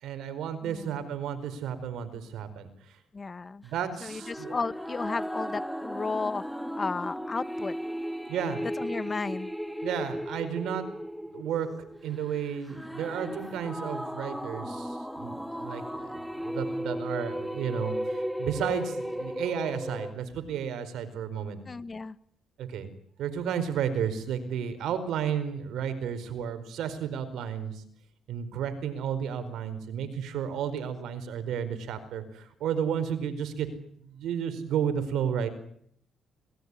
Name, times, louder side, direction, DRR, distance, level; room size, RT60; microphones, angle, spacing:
voice 1, 0.0-3.0 3.6-4.6 8.3-8.6 9.8-10.9 11.3-21.6 22.6-22.9 23.2-27.8 28.3-33.7 34.0-35.5, right 8 dB, 80° right, 11 dB, 4.8 m, -32 dB
voice 2, 0.6-1.1 3.1-3.6 4.0-6.4 6.8-7.8 8.6-9.5 21.7-22.2, left 4 dB, 30° left, 15 dB, 1.2 m, -33 dB
sound 1, 4.1-20.1, equal, ahead, 1.8 m, -36 dB
27.0 x 21.0 x 9.9 m, 0.67 s
cardioid pair, 90°, 0 cm